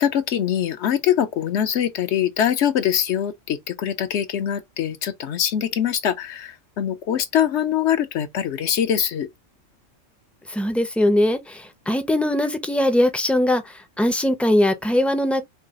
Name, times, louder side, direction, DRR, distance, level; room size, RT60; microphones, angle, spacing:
voice 1, 0.0-9.3, left 9 dB, 65° left, 0.9 m, -23 dB
voice 2, 10.5-15.4, left 1 dB, ahead, 0.4 m, -21 dB
4.7 x 2.3 x 3.7 m
omnidirectional pair, 1.3 m